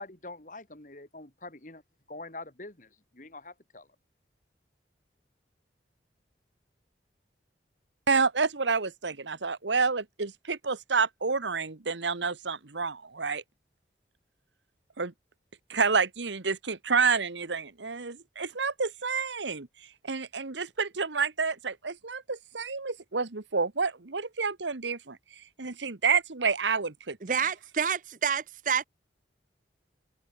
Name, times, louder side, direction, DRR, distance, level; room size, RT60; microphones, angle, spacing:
voice 1, 0.0-1.8 2.1-3.9, left 2 dB, 45° left, 2.5 m, -44 dB
voice 2, 8.1-13.4 15.0-15.1 15.7-19.7 20.0-27.2, right 5 dB, 80° right, 1.3 m, -29 dB
voice 3, 27.2-28.8, right 6 dB, 45° right, 0.7 m, -28 dB
head